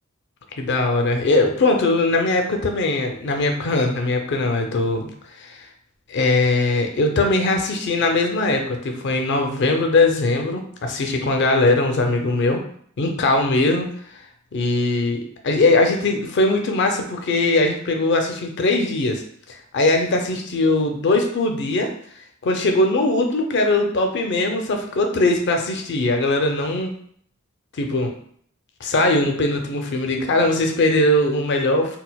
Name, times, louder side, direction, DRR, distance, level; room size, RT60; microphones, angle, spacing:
voice 1, 0.6-5.1 5.4-5.6 6.1-12.6 13.0-13.9 14.5-19.2 19.5-21.9 22.4-27.0 27.8-28.1 28.8-32.0, left 2 dB, 60° left, 3 dB, 0.5 m, -20 dB
4.0 x 2.1 x 2.2 m, 0.62 s
head